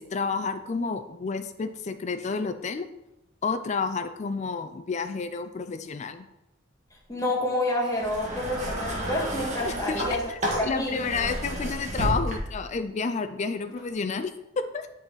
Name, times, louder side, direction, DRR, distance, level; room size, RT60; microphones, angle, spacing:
voice 1, 0.0-2.9 3.4-6.3 9.6-14.9, left 4 dB, 40° left, 8 dB, 0.4 m, -30 dB
voice 2, 7.1-10.2 10.5-11.0, left 1 dB, 20° left, -2 dB, 1.5 m, -28 dB
sound 1, 7.9-12.7 13.7-13.8, equal, 40° right, 1.6 m, -31 dB
10.5 x 4.0 x 3.9 m, 0.92 s
head